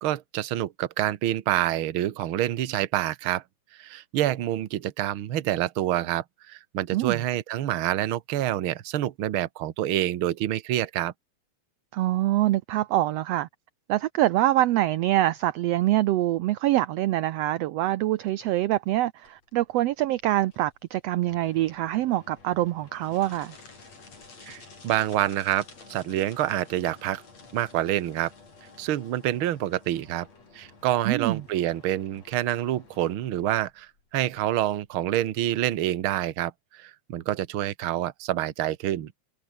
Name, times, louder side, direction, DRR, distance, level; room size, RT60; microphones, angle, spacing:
voice 1, 0.0-3.4 3.8-11.1 24.5-25.6 25.9-27.2 27.5-28.3 28.8-30.3 30.5-39.1, right 13 dB, 55° right, 1.7 m, -27 dB
voice 2, 11.9-13.5 13.9-23.5 31.1-31.4, right 15 dB, 70° right, 1.7 m, -25 dB
sound 1, 19.2-36.3, left 4 dB, 60° left, 6.9 m, -52 dB
omnidirectional pair, 3.3 m